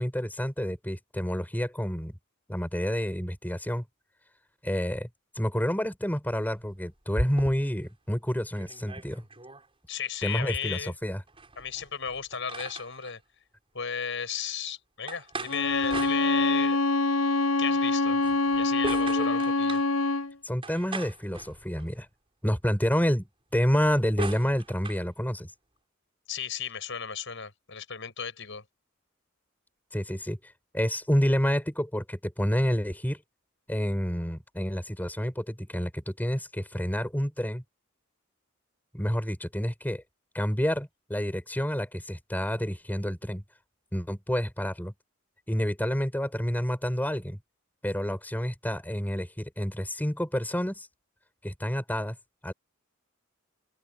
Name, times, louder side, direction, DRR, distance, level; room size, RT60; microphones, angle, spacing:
voice 1, 0.0-2.2 2.5-3.9 4.6-5.1 5.4-9.2 10.2-11.2 20.4-22.1 22.4-23.3 23.5-25.5 29.9-33.2 33.7-37.6 38.9-40.0 40.3-43.4 43.9-44.9 45.5-47.4 47.8-50.9 51.4-52.2 52.4-52.5, equal, 10° left, 5.4 m, -29 dB
sound 1, 6.3-7.9 8.3-8.4 8.6-9.7 11.3-13.2 15.1-16.8 18.1-19.9 20.6-22.0 23.5-25.0, right 2 dB, 25° right, 7.9 m, -39 dB
voice 2, 9.9-10.9 11.6-13.2 13.7-16.8 17.6-18.2 18.5-19.8 26.3-28.6, left 7 dB, 65° left, 7.3 m, -34 dB
Bowed string instrument, 15.5-20.3, left 3 dB, 90° left, 0.8 m, -25 dB
open air
head